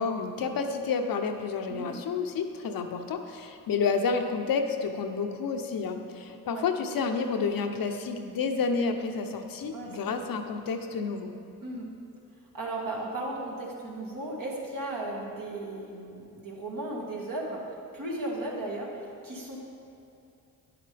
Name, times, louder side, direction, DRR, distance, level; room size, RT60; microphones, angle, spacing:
voice 1, 0.0-11.3, left 5 dB, 70° left, 5 dB, 0.8 m, -30 dB
voice 2, 9.7-10.2 11.6-11.9 12.5-17.6 17.9-19.6, right 2 dB, 60° right, -3 dB, 1.9 m, -36 dB
9.8 x 7.7 x 3.4 m, 2.7 s
cardioid pair, 65°, 36 cm